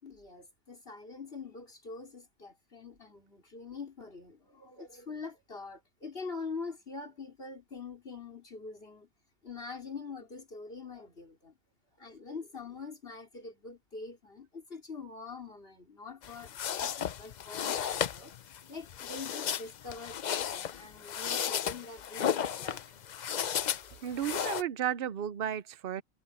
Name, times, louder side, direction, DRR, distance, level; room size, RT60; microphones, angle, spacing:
voice 1, 0.0-9.1 9.4-11.5 12.0-18.3 18.7-23.0, left 4 dB, 45° left, 4.5 m, -44 dB
sound 1, 16.2-24.6, left 9 dB, 85° left, 0.4 m, -34 dB
voice 2, 24.0-26.0, right 10 dB, 50° right, 0.8 m, -33 dB
omnidirectional pair, 1.4 m